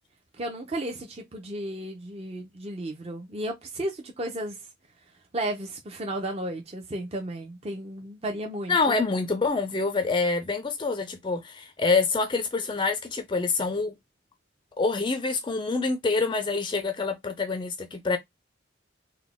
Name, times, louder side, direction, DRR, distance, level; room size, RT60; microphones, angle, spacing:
voice 1, 0.4-4.7 5.3-8.9, right 1 dB, 30° right, 0.6 m, -34 dB
voice 2, 8.7-13.9 14.8-18.2, left 4 dB, 25° left, 0.4 m, -26 dB
3.9 x 2.1 x 3.4 m
head